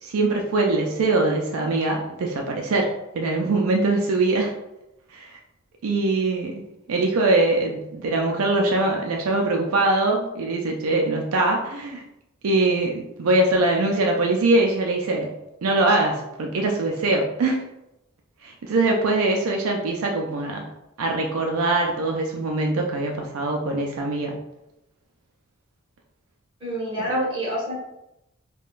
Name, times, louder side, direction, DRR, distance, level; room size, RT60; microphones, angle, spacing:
voice 1, 0.0-4.5 5.1-5.4 5.8-6.6 6.9-12.0 12.4-15.3 15.6-17.6 18.4-20.7 21.0-24.4 27.1-27.3, right 2 dB, 80° right, 1 dB, 0.4 m, -22 dB
voice 2, 26.6-27.7, equal, 25° right, -7 dB, 1.4 m, -28 dB
3.6 x 2.2 x 2.4 m, 0.88 s
head